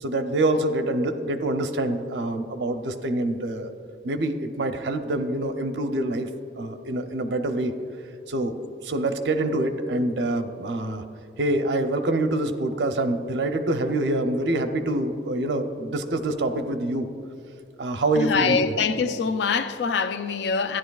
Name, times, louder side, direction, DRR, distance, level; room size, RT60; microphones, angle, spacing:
voice 1, 0.0-3.7 4.0-6.3 6.6-7.7 8.3-8.5 8.8-11.0 11.4-17.1 17.8-18.8, right 2 dB, 90° right, 0.6 m, -26 dB
voice 2, 18.2-20.8, left 5 dB, 80° left, 0.4 m, -24 dB
13.0 x 9.9 x 2.3 m
head